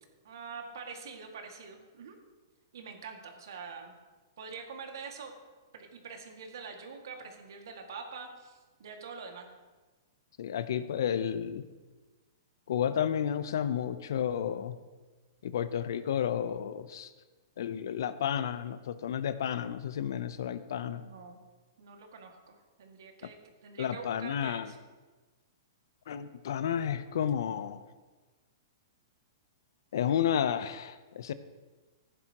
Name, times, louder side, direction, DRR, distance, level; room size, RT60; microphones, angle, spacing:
voice 1, 0.2-2.2 2.7-3.9 4.4-5.4 5.7-9.5 20.8-21.4 21.8-24.8, right 5 dB, 70° right, 3 dB, 2.1 m, -45 dB
voice 2, 10.4-11.6 12.7-14.8 15.4-17.1 17.6-21.0 23.8-24.7 26.1-27.8 29.9-31.3, left 9 dB, 70° left, 13 dB, 0.7 m, -31 dB
14.5 x 11.0 x 3.0 m, 1.3 s
hypercardioid pair, 150°, 2 cm